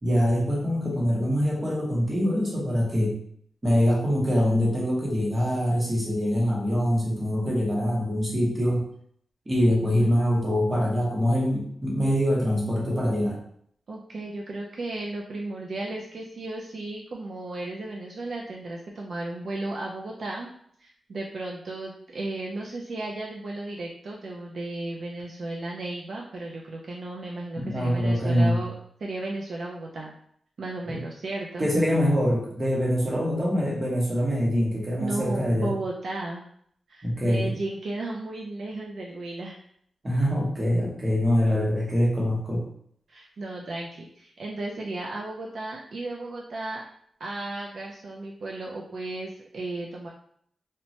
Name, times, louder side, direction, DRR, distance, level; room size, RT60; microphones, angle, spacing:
voice 1, 0.0-3.2 3.6-8.8 9.5-13.4 27.6-28.6 30.9-31.0 31.6-35.7 37.0-37.5 40.0-42.6, equal, 25° right, -4 dB, 0.8 m, -24 dB
voice 2, 13.9-20.5 20.8-30.1 30.6-31.7 35.0-36.4 36.9-39.6 43.1-46.8 47.2-50.1, right 2 dB, 55° right, -2 dB, 0.3 m, -34 dB
3.0 x 2.1 x 2.7 m, 0.66 s
wide cardioid pair, 140°, 0 cm